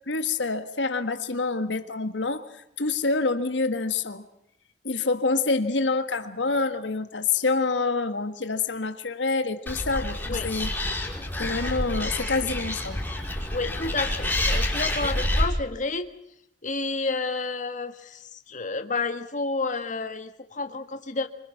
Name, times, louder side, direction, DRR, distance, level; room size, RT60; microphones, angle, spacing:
voice 1, 0.1-2.5 2.8-4.2 4.8-11.0 11.4-13.0, left 3 dB, 80° left, 8 dB, 1.6 m, -27 dB
Animal, 9.7-15.5, left 1 dB, 10° left, 5.4 m, -28 dB
voice 2, 13.5-16.1 16.6-21.3, left 3 dB, 45° left, 7 dB, 1.7 m, -30 dB
26.0 x 25.0 x 5.8 m, 0.78 s
head